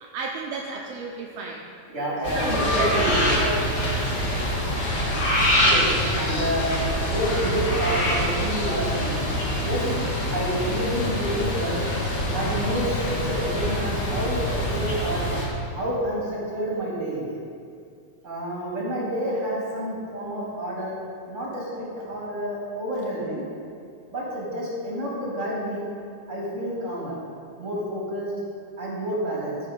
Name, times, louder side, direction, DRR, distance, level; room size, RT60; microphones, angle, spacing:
voice 1, 0.0-1.7 2.2-3.0 4.1-4.3 9.8-10.1, right 4 dB, 75° right, 1 dB, 1.6 m, -34 dB
voice 2, 1.9-3.5 5.5-5.9 6.2-6.7 7.0-9.2 9.6-9.8 10.3-11.7 12.3-15.3 15.7-17.3 18.2-21.0 21.3-23.4 24.1-25.9 26.3-27.2 27.6-28.3 28.8-29.6, equal, 25° right, -5 dB, 2.8 m, -29 dB
sound 1, 2.2-15.5, equal, 40° left, 1.9 m, -25 dB
14.0 x 5.5 x 5.3 m, 2.4 s
omnidirectional pair, 3.3 m